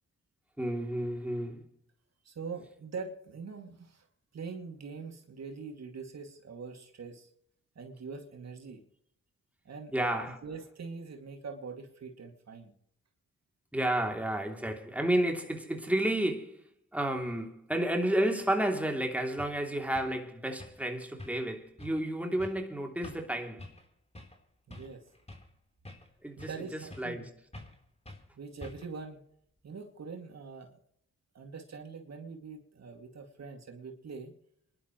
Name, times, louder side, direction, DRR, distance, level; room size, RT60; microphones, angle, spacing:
voice 1, 0.6-1.6 9.9-10.4 13.7-23.7 26.2-27.3, right 1 dB, 5° right, 3.0 m, -31 dB
voice 2, 2.2-4.1 4.3-7.3 7.8-8.8 9.6-9.9 10.4-12.7 24.7-25.0 26.4-27.3 28.4-29.2 29.6-30.8 31.3-34.3, right 5 dB, 65° right, 2.6 m, -43 dB
sound 1, 18.9-19.0 19.4-19.6 19.9-20.2 20.6-20.9 21.2-21.5 21.8-22.0 22.4-22.6 23.0-23.3 23.6-23.9 24.1-24.4 24.7-25.5 25.8-26.6 26.9-27.2 27.5-27.8 28.0-28.3 28.6-29.0, left 1 dB, 20° left, 3.9 m, -48 dB
26.5 x 11.5 x 3.2 m
cardioid pair, 50°, 29 cm